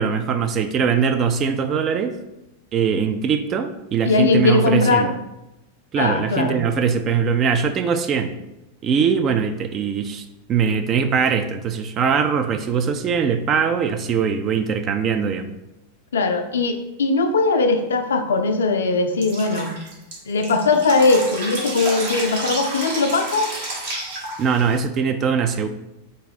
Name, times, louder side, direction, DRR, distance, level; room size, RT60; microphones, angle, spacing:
voice 1, 0.0-2.2 2.7-5.1 5.9-8.3 8.8-15.5 24.4-25.7, right 6 dB, 30° right, 7 dB, 0.4 m, -21 dB
voice 2, 4.0-5.1 6.0-6.6 16.1-19.7 20.3-23.5, left 3 dB, 65° left, 7 dB, 0.4 m, -20 dB
Drip, 19.2-24.8, right 2 dB, 55° right, 1.3 m, -30 dB
3.9 x 2.6 x 3.9 m, 0.93 s
figure-of-eight pair, 90°, 0 cm